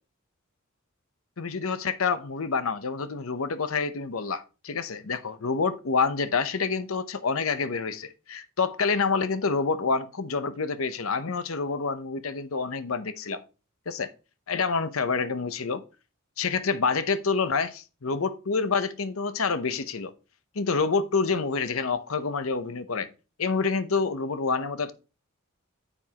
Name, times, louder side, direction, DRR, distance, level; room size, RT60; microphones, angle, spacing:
voice 1, 1.4-13.4 13.9-14.1 14.5-15.8 16.4-20.1 20.5-23.1 23.4-24.9, left 4 dB, 70° left, 0.8 m, -27 dB
9.8 x 7.1 x 2.9 m
head